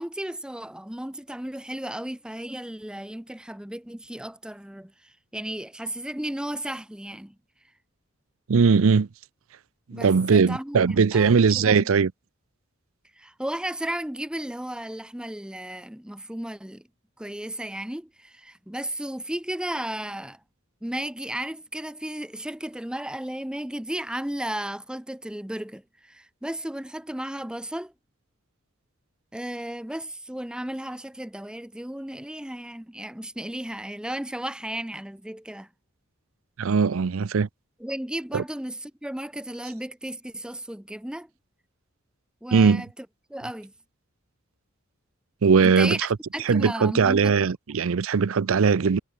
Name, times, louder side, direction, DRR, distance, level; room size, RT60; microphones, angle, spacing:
voice 1, 0.0-7.3 9.9-11.9 13.2-16.8 17.2-20.4 20.8-27.9 29.3-35.7 37.8-41.3 42.4-42.9 43.3-43.7 45.6-46.0 46.3-47.3, right 1 dB, 5° right, 0.6 m, -34 dB
voice 2, 8.5-9.1 9.9-12.1 36.6-37.5 38.3-38.4 42.5-42.8 45.4-46.1 46.4-49.0, right 5 dB, 70° right, 0.5 m, -20 dB
head